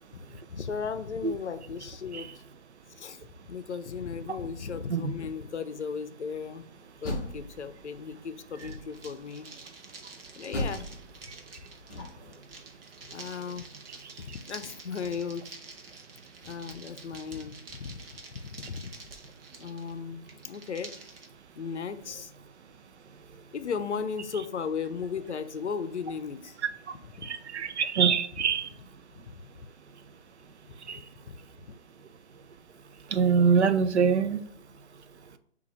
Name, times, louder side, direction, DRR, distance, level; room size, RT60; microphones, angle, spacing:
voice 1, 0.1-2.3 2.9-6.6 7.0-9.5 10.3-10.9 13.1-13.7 14.2-15.4 16.4-18.2 18.4-18.9 19.6-20.9 21.6-22.3 23.5-26.6 27.2-27.3 29.3-29.4 31.2-31.4, left 6 dB, 90° left, 11 dB, 0.5 m, -36 dB
Door, 6.8-8.0 8.6-9.2 10.5-12.4, left 1 dB, 15° left, 0.6 m, -37 dB
sound 1, 8.6-21.3, right 3 dB, 55° right, 0.9 m, -48 dB
voice 2, 27.2-28.7 30.8-31.1 33.1-34.4, right 6 dB, 75° right, 12 dB, 0.5 m, -25 dB
5.6 x 2.5 x 3.0 m, 0.66 s
figure-of-eight pair, 150°, 34 cm